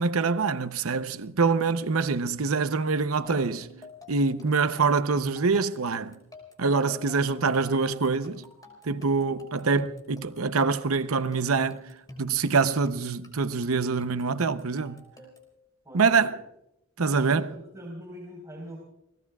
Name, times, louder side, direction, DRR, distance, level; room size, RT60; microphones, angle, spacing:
voice 1, 0.0-3.6 4.1-6.1 6.6-8.4 8.8-11.8 12.2-15.0 15.9-16.4 17.0-17.5, right 4 dB, 90° right, 0.8 m, -25 dB
sound 1, 3.2-15.6, left 1 dB, 20° left, 5.3 m, -48 dB
voice 2, 3.2-3.6 15.8-16.4 17.0-18.8, equal, 15° right, 4.4 m, -43 dB
29.5 x 20.0 x 2.4 m
head